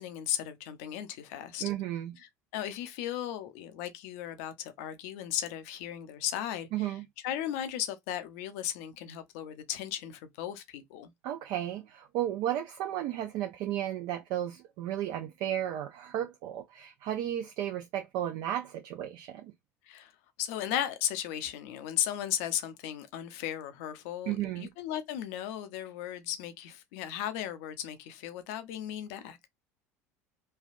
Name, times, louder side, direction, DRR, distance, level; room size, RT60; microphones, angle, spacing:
voice 1, 0.0-1.7 2.2-11.1 19.9-20.1 20.4-29.5, left 11 dB, 70° left, 0.6 m, -36 dB
voice 2, 1.6-2.1 6.7-7.0 11.2-19.5 24.3-24.7, right 12 dB, 60° right, 0.5 m, -34 dB
3.3 x 2.2 x 2.4 m
hypercardioid pair, 70°, 8 cm